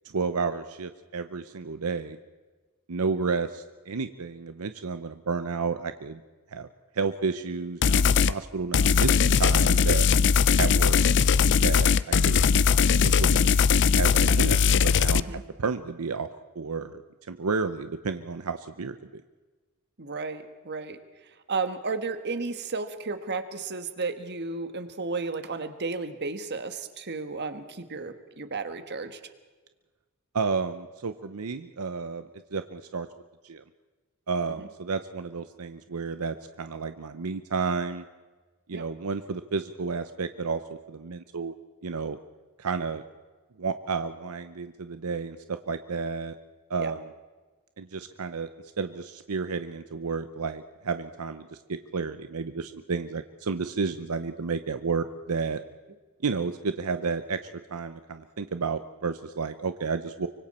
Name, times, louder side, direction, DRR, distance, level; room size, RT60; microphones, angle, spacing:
voice 1, 0.0-2.2 2.9-6.2 6.5-6.7 6.9-10.1 10.6-11.0 11.6-13.5 13.9-16.3 16.6-17.0 17.3-19.2 30.3-33.1 33.4-33.6 34.3-38.0 38.7-41.5 41.8-42.2 42.6-43.0 43.6-46.4 46.7-47.0 47.8-48.5 48.8-55.6 56.2-57.4 57.7-60.3, right 4 dB, 80° right, 10 dB, 0.8 m, -31 dB
sound 1, 7.8-8.3 8.7-15.2, left 6 dB, 55° left, 0.5 m, -20 dB
voice 2, 20.0-21.0 21.5-29.2 34.5-34.7 38.7-38.9 46.8-46.9, right 4 dB, 50° right, 9 dB, 1.5 m, -33 dB
24.5 x 24.5 x 4.3 m, 1.3 s
head